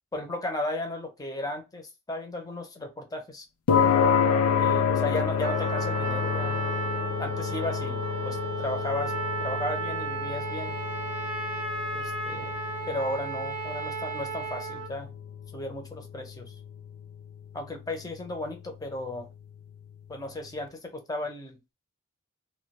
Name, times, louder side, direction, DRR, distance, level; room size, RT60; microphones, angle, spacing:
voice 1, 0.1-3.4 4.6-6.7 7.2-9.1 9.4-10.8 11.9-12.6 12.9-15.1 15.5-16.5 17.5-19.3 20.1-21.6, left 1 dB, 15° left, 4 dB, 0.5 m, -35 dB
sound 1, 3.7-20.2, left 7 dB, 85° left, 0.4 m, -30 dB
Trumpet, 5.4-14.9, right 4 dB, 85° right, 0.6 m, -34 dB
2.2 x 2.1 x 2.8 m, 0.24 s
head